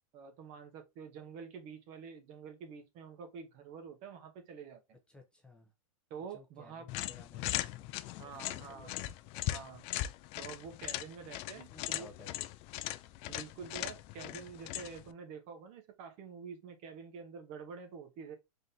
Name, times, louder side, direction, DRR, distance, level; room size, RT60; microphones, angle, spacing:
voice 1, 0.1-4.8 6.1-6.9 8.2-8.9 9.5-9.8 10.4-12.1 13.3-18.4, right 6 dB, 40° right, 1.1 m, -47 dB
voice 2, 5.1-5.7 6.3-9.1 11.6-12.5, left 3 dB, 5° left, 0.7 m, -57 dB
sound 1, 6.9-15.1, left 16 dB, 35° left, 0.3 m, -39 dB
3.9 x 3.7 x 2.8 m
hypercardioid pair, 135°, 18 cm